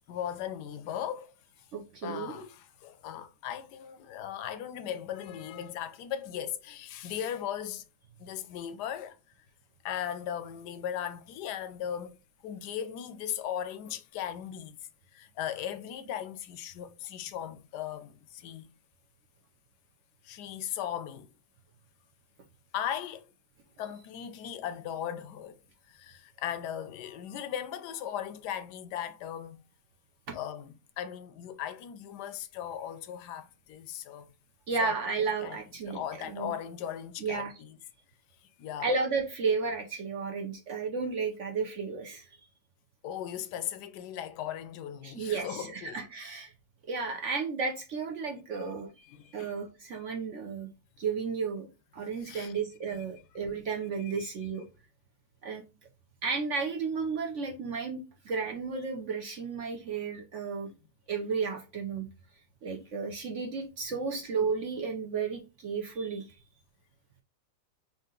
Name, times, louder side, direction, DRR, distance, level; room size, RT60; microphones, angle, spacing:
voice 1, 0.1-1.3 2.0-7.8 8.2-9.2 9.8-12.2 12.4-14.8 15.1-18.7 20.2-21.3 22.7-23.3 23.8-25.6 25.9-29.6 30.3-34.3 34.8-34.9 35.4-35.6 35.9-37.8 38.6-38.9 43.0-46.0 49.0-49.5 52.2-52.5 54.0-54.3, left 10 dB, 75° left, 1.1 m, -38 dB
voice 2, 1.7-2.4 30.3-30.4 34.7-36.5 37.2-37.5 38.8-42.5 45.0-46.5 46.8-48.9 49.3-50.7 51.0-51.7 51.9-54.6 55.4-55.6 56.2-60.7 61.1-62.1 62.6-66.4, right 5 dB, 65° right, 0.7 m, -33 dB
3.7 x 2.8 x 3.7 m
omnidirectional pair, 1.9 m